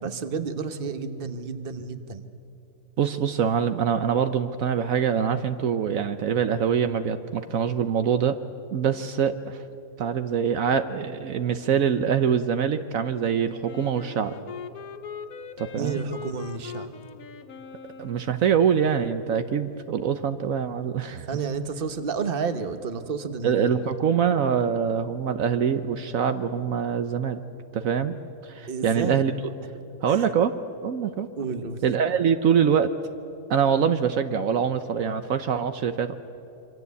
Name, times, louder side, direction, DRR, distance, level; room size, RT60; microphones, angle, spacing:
voice 1, 0.0-2.2 15.7-16.9 21.3-23.7 28.7-29.2 30.1-30.2 31.4-31.8, right 5 dB, 40° right, 9 dB, 1.3 m, -31 dB
voice 2, 3.0-8.4 8.7-9.6 10.0-14.3 15.6-16.0 18.0-21.3 23.4-27.4 27.7-28.2 28.4-29.3 30.0-30.5 30.8-31.3 31.8-32.9 33.5-36.2, right 7 dB, 70° right, 9 dB, 1.2 m, -24 dB
Wind instrument woodwind instrument, 13.6-18.7, left 6 dB, 90° left, 1.5 m, -41 dB
26.0 x 25.0 x 8.3 m, 2.9 s
omnidirectional pair, 1.5 m